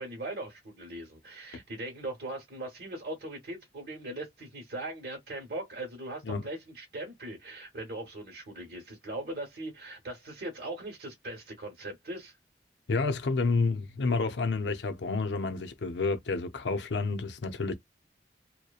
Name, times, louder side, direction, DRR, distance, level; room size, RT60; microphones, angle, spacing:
voice 1, 0.0-12.4, right 1 dB, 55° right, 1.0 m, -40 dB
voice 2, 12.9-17.7, left 3 dB, 75° left, 0.6 m, -29 dB
2.8 x 2.1 x 2.3 m
head